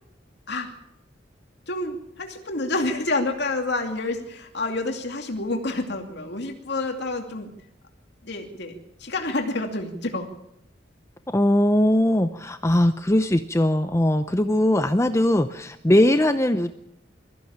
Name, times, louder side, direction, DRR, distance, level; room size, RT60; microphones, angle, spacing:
voice 1, 1.7-7.5 8.2-10.3, left 2 dB, 65° left, 3 dB, 2.6 m, -28 dB
voice 2, 11.3-16.8, left 1 dB, 15° left, 9 dB, 0.7 m, -20 dB
22.5 x 15.0 x 8.8 m, 0.79 s
head